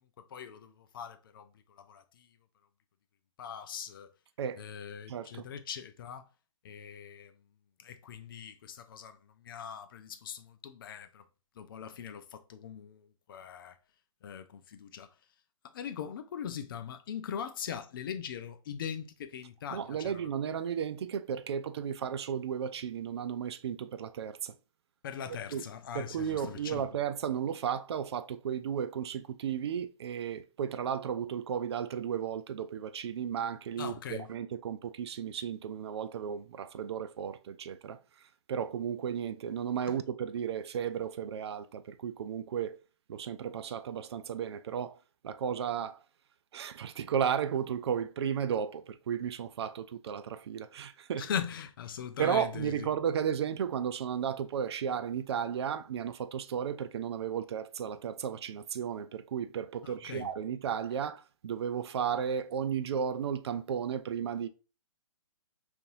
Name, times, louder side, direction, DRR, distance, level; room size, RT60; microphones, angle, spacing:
voice 1, 0.3-1.5 1.8-2.3 3.4-4.1 4.6-6.2 6.6-7.3 7.8-9.2 9.4-11.2 11.6-13.8 14.2-15.1 15.6-20.2 25.0-26.9 33.8-34.3 39.9-40.0 51.2-52.9 59.8-60.3, left 8 dB, 40° left, 0.5 m, -41 dB
voice 2, 5.1-5.5 19.7-24.5 25.5-25.6 25.9-38.0 38.5-42.8 43.1-45.0 45.2-46.0 46.5-51.3 52.2-64.5, right 8 dB, 50° right, 0.4 m, -34 dB
5.3 x 2.6 x 2.5 m
figure-of-eight pair, 130°, 17 cm